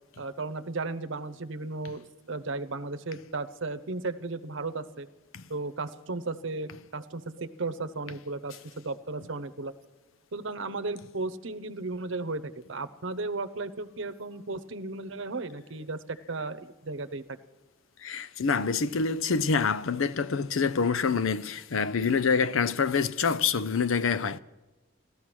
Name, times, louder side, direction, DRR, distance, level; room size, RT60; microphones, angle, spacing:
voice 1, 0.2-5.1 5.5-9.7 10.3-17.2, right 3 dB, 70° right, 0.9 m, -35 dB
voice 2, 18.0-24.4, left 5 dB, 80° left, 0.6 m, -26 dB
16.5 x 13.0 x 6.1 m
head